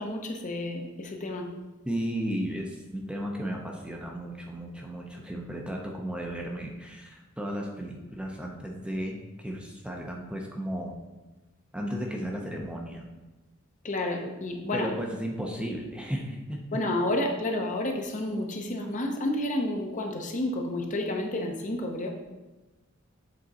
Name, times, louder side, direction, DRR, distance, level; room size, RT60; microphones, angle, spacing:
voice 1, 0.0-1.5 13.8-14.9 16.7-22.1, left 1 dB, 35° left, 2 dB, 0.8 m, -30 dB
voice 2, 1.8-11.0 11.7-13.1 14.7-16.6, equal, 5° right, 0 dB, 0.6 m, -34 dB
7.6 x 3.7 x 4.0 m, 1.1 s
head